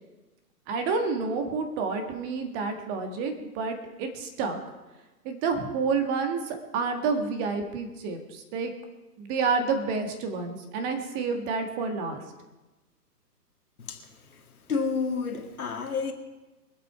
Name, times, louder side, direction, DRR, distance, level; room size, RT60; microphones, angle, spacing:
voice 1, 0.7-4.6 5.3-8.7 9.2-12.2, right 4 dB, 20° right, 1.6 m, -29 dB
voice 2, 14.7-16.1, left 5 dB, 60° left, 2.2 m, -29 dB
25.0 x 8.3 x 4.8 m
figure-of-eight pair, 125°, 49 cm